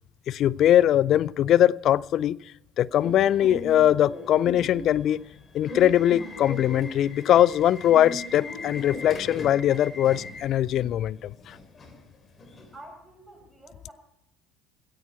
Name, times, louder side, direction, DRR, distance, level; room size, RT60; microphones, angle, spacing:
voice 1, 0.3-2.4 2.8-5.2 5.5-11.6, left 11 dB, 45° left, 0.4 m, -21 dB
Subway metro underground / Alarm, 2.9-12.8, left 2 dB, 30° left, 3.5 m, -39 dB
voice 2, 12.7-13.9, right 1 dB, 5° right, 7.1 m, -48 dB
16.5 x 14.5 x 4.2 m
figure-of-eight pair, 65°, 0 cm